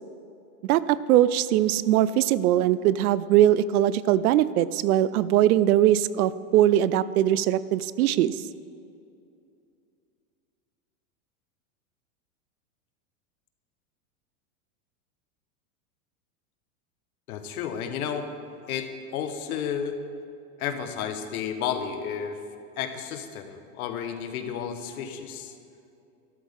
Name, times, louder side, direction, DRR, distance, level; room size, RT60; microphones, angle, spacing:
voice 1, 0.6-8.4, right 12 dB, 80° right, 17 dB, 0.6 m, -21 dB
voice 2, 17.3-18.3 18.7-20.0 20.6-22.4 22.8-25.5, left 8 dB, 75° left, 7 dB, 1.3 m, -32 dB
12.5 x 12.5 x 3.6 m, 2.6 s
supercardioid pair, 145°, 44 cm